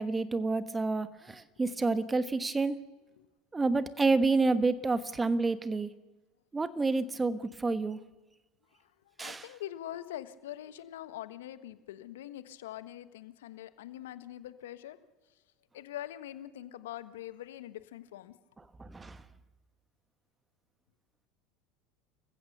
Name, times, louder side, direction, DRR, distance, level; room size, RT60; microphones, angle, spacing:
voice 1, 0.0-2.8 3.5-5.9 6.5-8.0 9.2-9.5 18.8-19.2, right 3 dB, 15° right, 13 dB, 1.3 m, -29 dB
voice 2, 9.2-15.0 15.7-18.3, left 12 dB, 80° left, 13 dB, 1.2 m, -43 dB
27.5 x 15.5 x 6.8 m, 1.2 s
hypercardioid pair, 85°, 0 cm